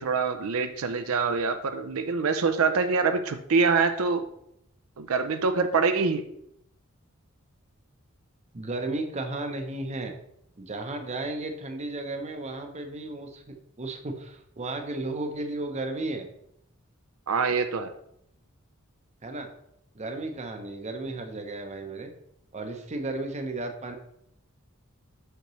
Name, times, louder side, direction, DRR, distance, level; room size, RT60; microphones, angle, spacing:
voice 1, 0.0-4.2 5.0-6.2 17.3-17.9, right 4 dB, 75° right, 8 dB, 0.5 m, -25 dB
voice 2, 8.5-10.1 10.6-16.3 19.2-19.5 19.9-22.1 22.5-24.0, right 2 dB, 30° right, 5 dB, 0.7 m, -34 dB
6.6 x 5.8 x 3.1 m, 0.75 s
head